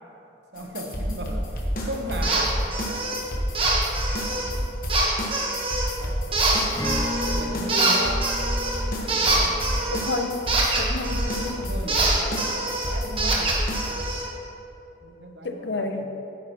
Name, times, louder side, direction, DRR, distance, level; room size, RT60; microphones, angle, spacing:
voice 1, 0.5-2.6 3.1-3.2 4.6-4.7 6.0-6.2 7.3-8.3 9.1-9.6 11.2-13.6 15.0-16.1, right 1 dB, 70° right, 3 dB, 0.9 m, -36 dB
sound 1, 0.6-14.0, equal, 50° left, 1.1 m, -29 dB
sound 2, 2.2-2.4 2.7-3.2 3.5-4.5 4.9-5.9 6.3-7.4 7.7-11.5 11.9-14.3, right 2 dB, 30° right, 1.1 m, -25 dB
Acoustic guitar, 6.7-12.2, left 1 dB, 20° left, 1.5 m, -36 dB
voice 2, 9.9-11.7 15.4-16.1, left 3 dB, 75° left, 6 dB, 0.6 m, -30 dB
9.4 x 9.0 x 3.0 m, 2.8 s
head